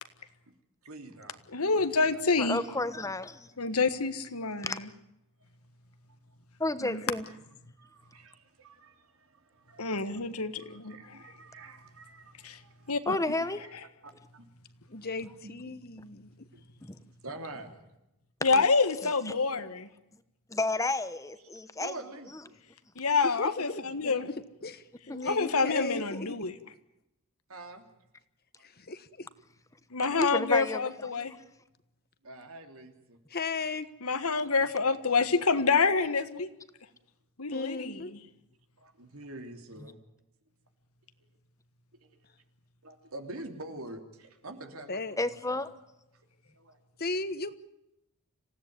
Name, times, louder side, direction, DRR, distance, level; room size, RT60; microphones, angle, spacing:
voice 1, 0.8-1.5 1.7-2.2 7.8-10.2 10.6-12.9 13.6-13.7 14.3-14.5 15.4-15.5 16.5-16.6 17.2-17.9 21.4-21.5 21.8-22.6 27.5-27.9 28.6-28.7 32.2-33.2 38.0-38.1 38.8-40.0 42.0-42.2 42.8-45.2 45.5-45.6 46.5-46.8, right 2 dB, 75° right, 6 dB, 3.3 m, -46 dB
voice 2, 1.5-2.6 3.6-4.9 6.8-7.0 9.8-11.0 12.4-12.6 12.9-13.4 18.4-19.9 23.0-24.3 25.3-26.5 29.9-31.3 34.0-36.5 37.4-37.9, left 4 dB, 85° left, 10 dB, 1.7 m, -27 dB
voice 3, 2.4-3.5 4.6-4.8 6.6-7.3 13.1-13.6 16.8-17.0 18.5-18.6 19.0-19.3 20.5-21.9 25.1-25.2 30.1-31.4 45.2-45.7, left 2 dB, 15° left, 13 dB, 1.1 m, -32 dB
voice 4, 14.9-16.3 23.2-24.3 24.6-26.4 28.6-29.3 33.3-33.9 37.5-38.1 44.9-45.2 47.0-47.5, left 3 dB, 45° left, 13 dB, 1.3 m, -36 dB
27.0 x 16.5 x 9.6 m, 0.90 s
head